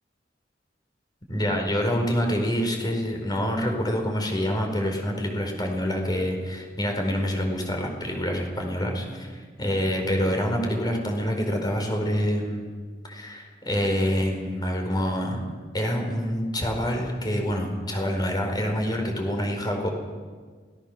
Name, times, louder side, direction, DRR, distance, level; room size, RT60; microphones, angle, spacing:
voice 1, 1.3-12.7 13.0-15.4 15.7-19.9, equal, 25° left, 3 dB, 4.8 m, -26 dB
28.0 x 19.0 x 6.8 m, 1.5 s
head